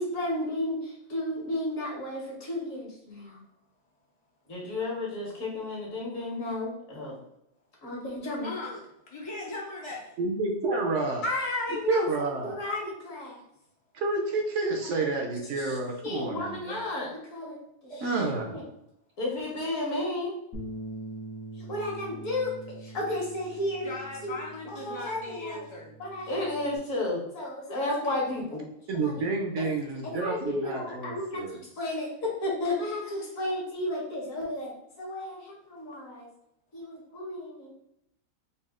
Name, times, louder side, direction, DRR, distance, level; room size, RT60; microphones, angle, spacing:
voice 1, 0.0-3.4 4.5-7.2 7.8-8.5 11.2-13.4 15.0-15.1 15.6-15.8 16.0-17.6 17.8-18.1 18.5-18.6 19.2-20.3 21.6-22.5 22.8-23.9 24.2-24.4 24.7-25.7 26.0-28.6 29.0-29.2 29.6-29.7 30.0-34.7 35.0-36.3 36.7-37.7, left 2 dB, 65° left, -2 dB, 1.7 m, -33 dB
voice 2, 8.3-10.1 23.8-25.9, left 2 dB, 40° left, -4 dB, 0.4 m, -39 dB
voice 3, 10.2-11.2 11.9-12.6 13.9-16.8 17.9-18.6 28.9-31.6, right 3 dB, 65° right, 2 dB, 0.9 m, -29 dB
Bass guitar, 20.5-26.8, right 2 dB, 85° left, 1.4 m, -43 dB
4.1 x 2.4 x 3.6 m, 0.80 s
omnidirectional pair, 1.5 m